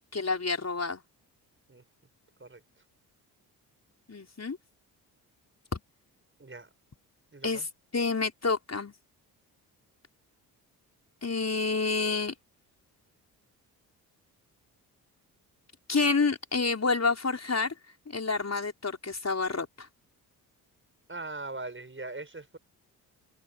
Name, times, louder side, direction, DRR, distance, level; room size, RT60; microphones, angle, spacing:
voice 1, 0.1-1.0 4.1-4.6 5.7-5.8 7.4-7.7 7.9-8.9 11.2-12.3 15.9-17.7 18.1-19.9, left 4 dB, 30° left, 5.6 m, -28 dB
voice 2, 7.3-7.7 21.1-22.6, right 3 dB, 25° right, 6.9 m, -40 dB
hypercardioid pair, 40°, 48 cm